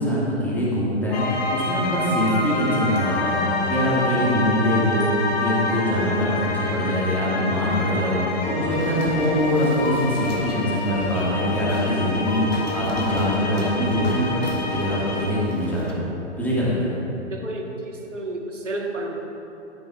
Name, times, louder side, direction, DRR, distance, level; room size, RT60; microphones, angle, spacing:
voice 1, 0.0-16.0 16.4-16.9, equal, 5° left, -7 dB, 1.8 m, -23 dB
sound 1, 1.1-15.5, left 2 dB, 35° left, 1.1 m, -27 dB
sound 2, 8.7-15.9, left 1 dB, 80° left, 1.5 m, -35 dB
voice 2, 17.3-19.1, right 2 dB, 80° right, 1 dB, 1.3 m, -31 dB
12.5 x 9.1 x 2.4 m, 2.9 s
figure-of-eight pair, 115°, 36 cm